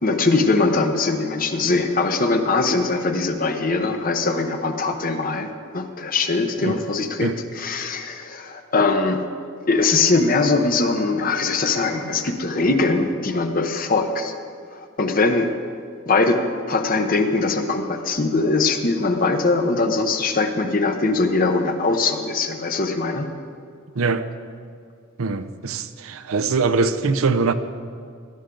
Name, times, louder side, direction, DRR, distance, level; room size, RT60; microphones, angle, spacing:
voice 1, 0.0-9.2 9.7-14.3 14.7-15.5 16.1-16.4 16.7-23.3, left 3 dB, 40° left, 0.9 m, -21 dB
voice 2, 25.2-27.5, right 4 dB, 75° right, 0.6 m, -22 dB
17.0 x 12.5 x 3.8 m
head